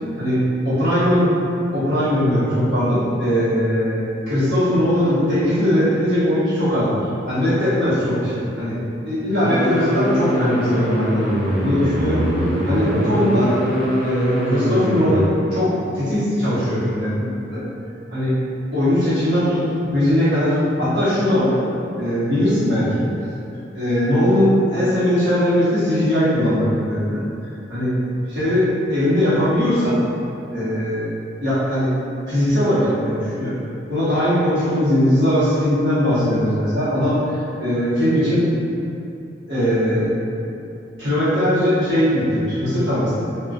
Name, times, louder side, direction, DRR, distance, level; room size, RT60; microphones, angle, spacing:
voice 1, 0.2-1.3 1.7-4.0 4.3-6.9 7.3-8.8 9.0-11.2 11.6-12.2 12.7-13.5 14.0-17.6 18.1-18.4 18.7-19.6 19.9-21.5 22.0-23.0 23.7-27.2 27.7-27.9 28.3-30.0 30.5-31.1 31.4-31.9 32.3-33.6 33.9-38.4 39.5-40.1 41.0-43.1, equal, 85° right, -13 dB, 1.2 m, -19 dB
sound 1, 9.4-15.3, equal, 60° right, 0.4 m, -22 dB
2.7 x 2.3 x 2.4 m, 2.6 s
head